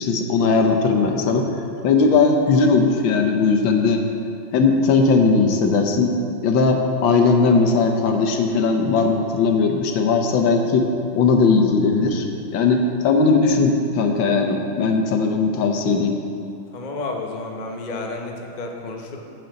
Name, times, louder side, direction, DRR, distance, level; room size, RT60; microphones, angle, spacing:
voice 1, 0.0-1.5 1.8-4.0 4.5-6.1 6.4-10.9 11.1-12.2 12.5-16.1, left 4 dB, 70° left, 4 dB, 1.5 m, -18 dB
voice 2, 16.7-19.2, left 3 dB, 50° left, 1 dB, 0.5 m, -31 dB
15.0 x 6.9 x 3.9 m, 2.5 s
omnidirectional pair, 2.3 m